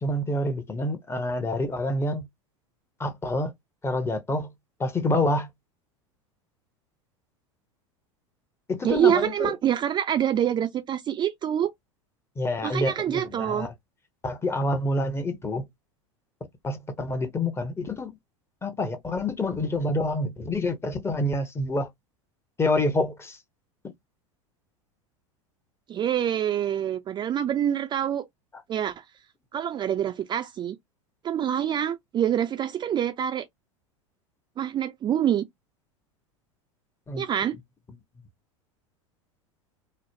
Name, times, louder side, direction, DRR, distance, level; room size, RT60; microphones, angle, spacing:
voice 1, 0.0-2.3 3.0-3.5 3.8-4.5 4.8-5.5 8.7-9.5 12.4-13.7 14.2-15.7 16.6-18.1 18.6-21.9 22.6-23.4 23.8-23.9 37.1-37.2, left 1 dB, 15° left, 0.8 m, -27 dB
voice 2, 8.8-11.7 12.6-13.7 25.9-28.2 28.7-29.0 29.5-30.8 31.2-33.5 34.6-35.5 37.2-37.5, right 10 dB, 25° right, 0.4 m, -26 dB
3.1 x 2.0 x 2.8 m
hypercardioid pair, 85°, 17 cm